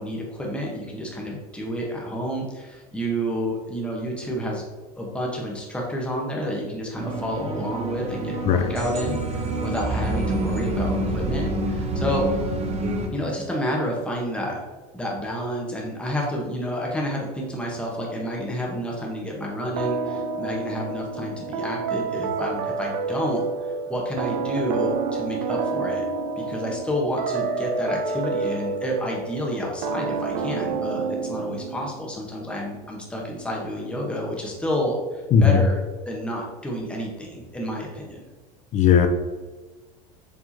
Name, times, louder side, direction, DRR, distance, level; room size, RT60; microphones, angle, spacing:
voice 1, 0.0-4.6 5.0-12.2 13.1-14.6 14.9-23.4 23.9-26.0 26.3-35.8 36.1-38.2, equal, 5° left, -2 dB, 1.0 m, -29 dB
sound 1, 7.0-13.1, right 1 dB, 30° right, 0.7 m, -27 dB
sound 2, 19.8-32.2, right 4 dB, 80° right, 0.5 m, -29 dB
voice 2, 35.3-35.6 38.7-39.1, left 7 dB, 35° left, 8 dB, 0.5 m, -16 dB
4.9 x 3.6 x 2.7 m, 1.3 s
supercardioid pair, 105°, 21 cm